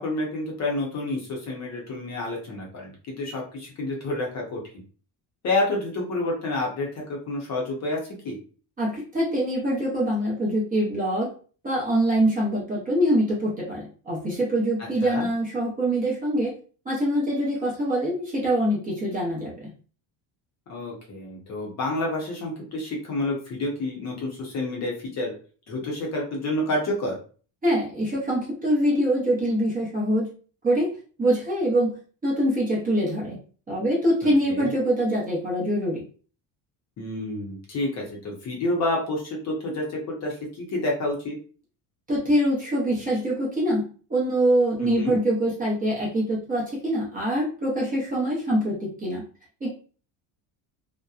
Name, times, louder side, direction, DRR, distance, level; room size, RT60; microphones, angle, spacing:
voice 1, 0.0-4.6 5.4-8.0 8.2-8.4 15.0-15.3 20.7-25.3 25.7-27.1 34.5-34.7 37.0-41.4 44.8-45.2, left 2 dB, 35° left, -1 dB, 0.7 m, -29 dB
voice 2, 8.8-11.3 11.6-16.5 16.9-19.7 27.6-30.3 30.6-30.9 31.2-31.9 32.2-33.4 33.7-36.0 42.1-43.8 44.1-49.2 49.6-49.7, right 1 dB, 20° right, -5 dB, 0.6 m, -24 dB
2.7 x 2.1 x 2.3 m, 0.40 s
cardioid pair, 170°, 45 cm